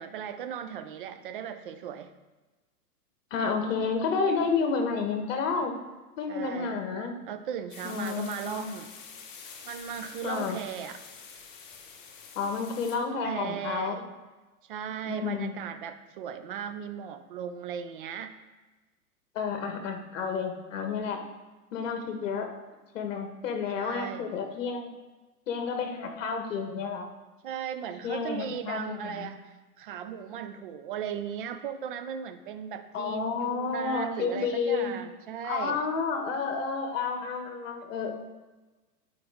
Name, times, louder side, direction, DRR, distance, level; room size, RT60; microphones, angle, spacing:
voice 1, 0.0-2.1 6.3-6.8 7.3-8.9 9.6-11.0 12.9-14.0 14.6-18.4 23.7-24.3 27.4-35.8, right 8 dB, 35° right, 9 dB, 0.5 m, -37 dB
voice 2, 3.3-5.7 6.2-7.1 7.8-8.6 10.2-10.6 12.3-14.0 15.1-15.5 19.3-21.2 21.7-22.5 22.9-24.9 25.5-27.1 28.0-29.3 32.9-35.0 35.4-38.1, left 5 dB, 55° left, 4 dB, 1.4 m, -30 dB
sound 1, 7.7-13.0, left 6 dB, 35° left, 1.0 m, -47 dB
9.3 x 4.9 x 3.5 m, 1.2 s
hypercardioid pair, 135°, 47 cm